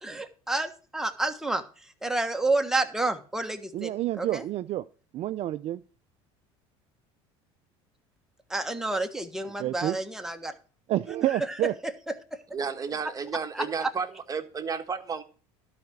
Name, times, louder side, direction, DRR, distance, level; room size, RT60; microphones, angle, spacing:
voice 1, 0.0-4.4 8.5-10.5 11.2-12.4 13.5-13.9, right 2 dB, 5° right, 5 dB, 1.3 m, -30 dB
voice 2, 3.7-4.8 5.1-5.8 9.6-10.0 10.9-11.7, right 14 dB, 45° right, 12 dB, 0.4 m, -28 dB
voice 3, 12.5-15.2, right 5 dB, 25° right, 7 dB, 1.4 m, -32 dB
12.0 x 4.9 x 7.1 m, 0.38 s
supercardioid pair, 95°, 14 cm